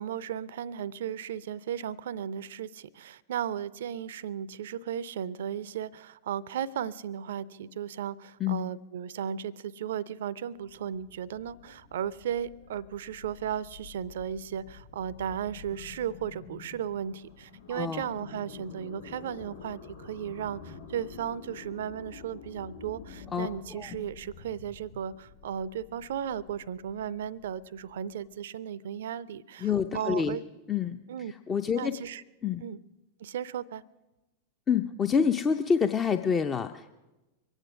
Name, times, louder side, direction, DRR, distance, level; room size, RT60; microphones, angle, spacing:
voice 1, 0.0-30.4 31.1-31.3 31.7-32.2 32.6-32.8 33.2-33.8, right 9 dB, 60° right, 21 dB, 0.4 m, -35 dB
sound 1, 10.5-28.3, left 5 dB, 80° left, 2.9 m, -49 dB
voice 2, 17.7-18.1 23.3-24.0 29.6-30.4 30.7-31.0 31.3-31.9 32.4-32.6 34.7-36.9, left 6 dB, 20° left, 8 dB, 0.5 m, -27 dB
23.0 x 9.0 x 6.1 m, 1.1 s
figure-of-eight pair, 90°, 0 cm